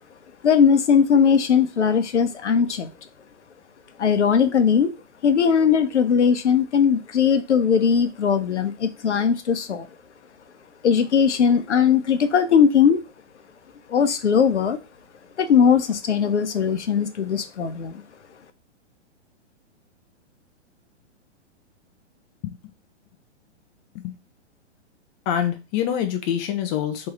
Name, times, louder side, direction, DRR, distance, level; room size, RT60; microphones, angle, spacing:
voice 1, 0.4-2.9 4.0-4.9 5.2-9.9 10.8-13.0 13.9-14.8 15.4-18.0, left 7 dB, 75° left, 9 dB, 0.9 m, -19 dB
voice 2, 25.3-27.1, left 10 dB, 25° left, 7 dB, 0.5 m, -25 dB
3.5 x 3.2 x 4.7 m, 0.28 s
figure-of-eight pair, 115°, 35 cm